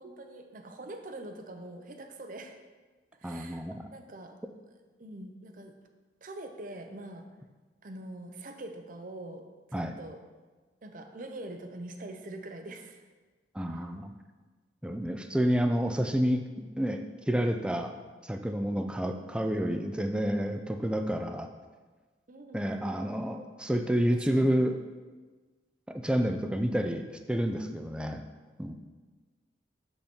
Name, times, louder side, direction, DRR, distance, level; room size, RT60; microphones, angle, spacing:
voice 1, 0.0-2.6 3.2-3.6 3.9-4.4 5.0-5.7 6.2-7.3 7.8-10.2 10.8-13.1 13.7-13.8 20.8-21.2 22.3-22.8 24.1-24.6, right 1 dB, 45° right, 6 dB, 0.7 m, -44 dB
voice 2, 3.2-3.9 9.7-9.9 13.5-14.1 14.8-17.9 18.2-21.5 22.5-24.7 25.9-28.2 28.6-28.7, equal, 5° right, 6 dB, 0.4 m, -29 dB
6.7 x 5.4 x 4.4 m, 1.3 s
head